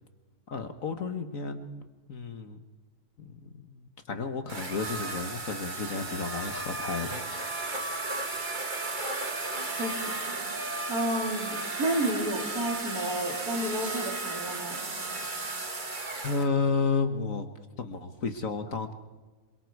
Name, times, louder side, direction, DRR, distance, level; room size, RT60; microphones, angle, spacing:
voice 1, 0.5-2.6 3.2-7.9 16.2-17.5 17.8-18.9, left 4 dB, 50° left, 8 dB, 1.6 m, -32 dB
sound 1, 4.5-16.5, right 3 dB, 30° right, 1.7 m, -34 dB
voice 2, 9.8-10.4 10.9-14.8, right 1 dB, 55° right, 1 dB, 4.0 m, -31 dB
27.0 x 23.0 x 4.7 m, 1.2 s
omnidirectional pair, 1.9 m